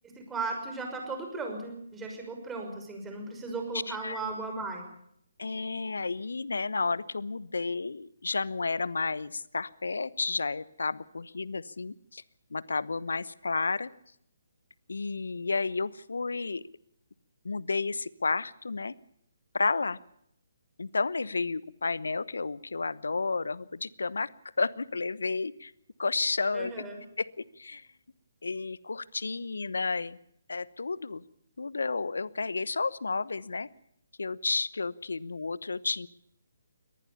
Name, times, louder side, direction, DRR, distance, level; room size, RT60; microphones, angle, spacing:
voice 1, 0.0-4.9 26.5-27.0, right 3 dB, 10° right, 3 dB, 5.9 m, -36 dB
voice 2, 3.9-4.2 5.4-12.2 12.5-13.9 14.9-16.6 17.4-18.9 19.5-20.0 20.8-24.3 24.6-25.7 26.0-26.8 27.2-27.9 28.4-30.2 30.5-31.2 31.6-33.7 34.2-36.1, left 4 dB, 70° left, 20 dB, 1.0 m, -31 dB
23.0 x 19.0 x 7.0 m, 0.72 s
figure-of-eight pair, 140°, 0 cm